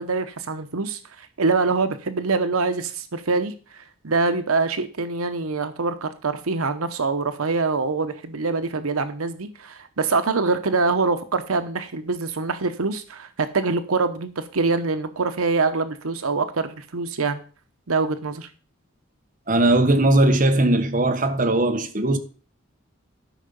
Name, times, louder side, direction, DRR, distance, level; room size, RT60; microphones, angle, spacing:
voice 1, 0.0-17.4 17.9-18.5, right 4 dB, 90° right, 0.9 m, -24 dB
voice 2, 19.5-22.2, right 2 dB, 40° right, 1.2 m, -19 dB
12.5 x 5.6 x 5.3 m
head